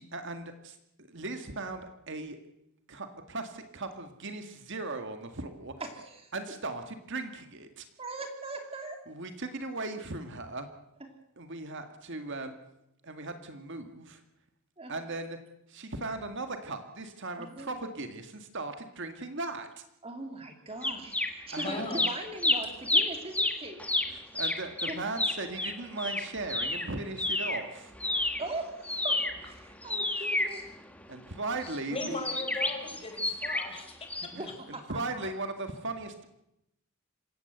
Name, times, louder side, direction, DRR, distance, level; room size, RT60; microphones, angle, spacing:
voice 1, 0.0-2.4 2.9-5.7 6.3-7.8 9.1-10.7 11.4-12.6 13.0-14.2 14.9-15.4 15.7-19.8 21.5-21.7 24.1-27.9 30.2-30.3 31.1-32.3 34.2-36.3, right 2 dB, 55° right, 7 dB, 1.9 m, -38 dB
voice 2, 5.8-6.3 8.0-9.0 14.8-14.9 17.4-17.7 20.0-21.2 21.5-23.8 24.9-25.0 28.4-30.6 34.3-35.3, right 2 dB, 25° right, 4 dB, 2.6 m, -40 dB
sound 1, 20.8-21.7 21.9-27.7 28.0-31.2 32.0-33.8 34.1-34.3, left 2 dB, 5° left, 1.7 m, -30 dB
voice 3, 21.6-22.0 30.5-30.6 31.6-34.1, left 2 dB, 25° left, 3 dB, 5.3 m, -38 dB
26.0 x 16.0 x 8.0 m, 0.84 s
head